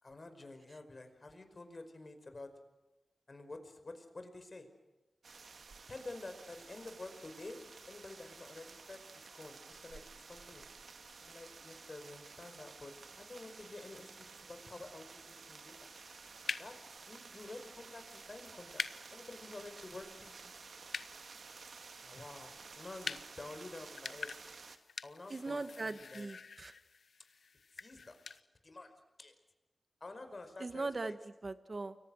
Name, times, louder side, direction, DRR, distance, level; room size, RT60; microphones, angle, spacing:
voice 1, 0.0-2.5 3.3-4.7 5.9-7.6 7.9-9.0 9.3-10.7 11.2-15.7 16.6-16.8 17.0-18.8 19.1-20.6 21.7-24.3 25.0-26.3 27.8-28.9 29.2-29.3 30.0-31.1, left 2 dB, 45° left, 7 dB, 5.3 m, -50 dB
sound 1, 5.2-24.8, right 4 dB, 75° right, 2.0 m, -53 dB
sound 2, 15.8-28.4, left 5 dB, 85° left, 0.9 m, -47 dB
voice 2, 25.3-26.7 30.6-32.0, right 3 dB, 45° right, 11 dB, 1.7 m, -40 dB
29.5 x 23.0 x 6.5 m, 1.0 s
wide cardioid pair, 70°, 0 cm